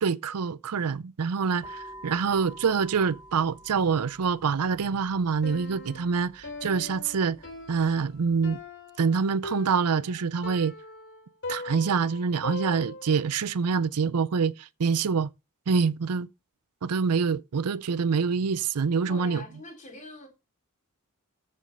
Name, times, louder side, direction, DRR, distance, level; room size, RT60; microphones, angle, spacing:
voice 1, 0.0-7.4 7.7-8.6 9.0-10.7 11.5-15.3 15.7-16.3 16.8-19.4, right 5 dB, 85° right, 0.5 m, -26 dB
sound 1, 1.6-8.6, equal, 20° right, 5.2 m, -49 dB
Piano, 5.4-13.3, left 2 dB, 55° left, 2.8 m, -40 dB
voice 2, 19.1-20.3, left 2 dB, 35° left, 3.8 m, -43 dB
14.0 x 5.3 x 5.4 m
head